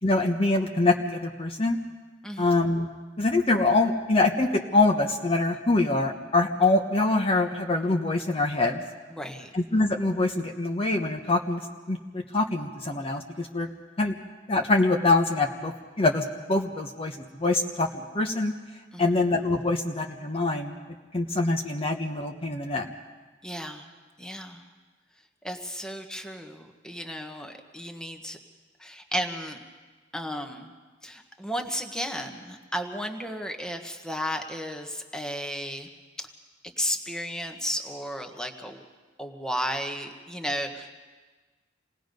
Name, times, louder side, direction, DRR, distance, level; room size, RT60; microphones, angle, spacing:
voice 1, 0.0-1.8 2.4-2.9 3.2-8.8 9.5-11.6 11.9-13.7 14.0-14.1 14.5-17.9 18.1-18.5 19.0-20.8 21.1-22.9, left 2 dB, 30° left, 2 dB, 1.0 m, -24 dB
voice 2, 9.1-9.5 18.9-19.2 23.4-23.9 24.2-24.6 25.4-28.4 28.8-29.6 30.1-30.7 31.0-35.9 36.2-36.3 36.8-38.9 39.2-41.0, equal, 5° left, 4 dB, 1.3 m, -34 dB
27.0 x 19.0 x 5.3 m, 1.4 s
head